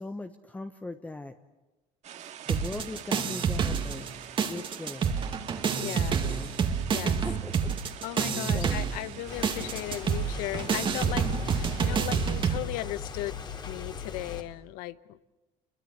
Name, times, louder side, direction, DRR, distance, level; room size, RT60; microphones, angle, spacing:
voice 1, 0.0-1.3 2.2-4.1 4.4-5.3 6.1-6.5 7.0-7.7 8.5-8.8, left 2 dB, 10° left, 7 dB, 1.1 m, -40 dB
sound 1, 2.0-12.1, right 10 dB, 50° right, 2.1 m, -46 dB
sound 2, 2.5-4.1 4.4-12.6, right 6 dB, 35° right, 2.1 m, -28 dB
voice 2, 5.8-6.2 6.9-7.1 8.0-13.4 13.7-15.2, left 16 dB, 80° left, 16 dB, 1.1 m, -37 dB
sound 3, 9.3-14.4, left 6 dB, 30° left, 2.7 m, -39 dB
29.0 x 23.0 x 8.2 m, 1.1 s
cardioid pair, 125°, 15 cm